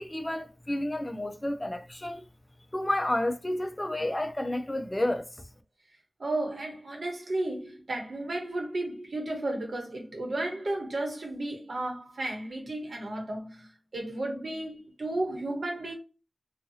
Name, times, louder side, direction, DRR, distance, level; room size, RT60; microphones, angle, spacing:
voice 1, 0.0-2.2 2.7-5.3, left 1 dB, 25° left, 0.4 m, -30 dB
voice 2, 6.2-15.9, right 2 dB, 80° right, 1.0 m, -33 dB
2.7 x 2.3 x 2.7 m
wide cardioid pair, 55°, 0 cm